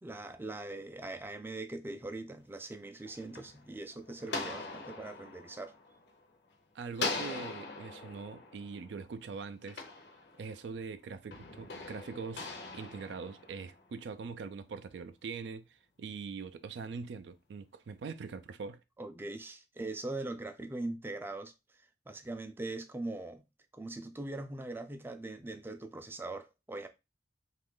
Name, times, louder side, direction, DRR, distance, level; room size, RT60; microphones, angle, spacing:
voice 1, 0.0-5.7 19.0-21.5 22.1-23.5 23.7-26.9, right 2 dB, 15° right, 0.3 m, -41 dB
sound 1, 2.8-6.5 6.9-10.7 11.3-14.0, left 3 dB, 70° left, 0.7 m, -42 dB
voice 2, 6.7-9.8 10.4-18.8, right 5 dB, 85° right, 0.4 m, -43 dB
3.0 x 2.4 x 3.6 m
head